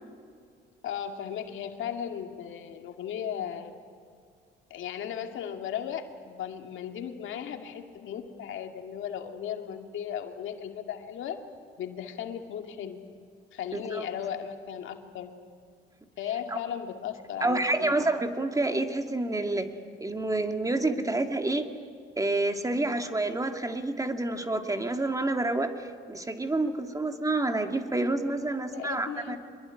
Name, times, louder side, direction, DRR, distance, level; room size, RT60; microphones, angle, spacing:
voice 1, 0.8-3.7 4.7-11.4 11.8-13.0 13.5-15.3 16.2-17.9 28.5-29.4, left 9 dB, 80° left, 5 dB, 2.4 m, -36 dB
voice 2, 13.7-14.0 16.5-16.6 17.4-19.7 20.0-21.7 22.2-29.4, right 2 dB, 15° right, 6 dB, 2.2 m, -28 dB
24.5 x 21.5 x 9.9 m, 2.2 s
cardioid pair, 90°, 20 cm